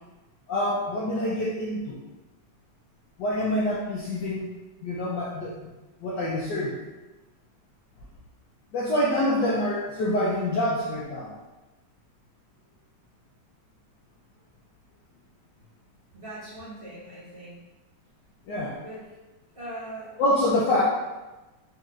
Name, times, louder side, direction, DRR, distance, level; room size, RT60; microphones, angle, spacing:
voice 1, 0.5-2.0 3.2-4.5 4.8-5.7 6.0-6.8 8.7-11.3 18.5-18.8 20.2-20.8, left 1 dB, 70° left, -6 dB, 1.1 m, -26 dB
voice 2, 16.1-17.6 18.7-19.0 19.5-20.1, right 1 dB, 30° right, -11 dB, 1.2 m, -40 dB
4.3 x 3.7 x 2.4 m, 1.1 s
omnidirectional pair, 2.4 m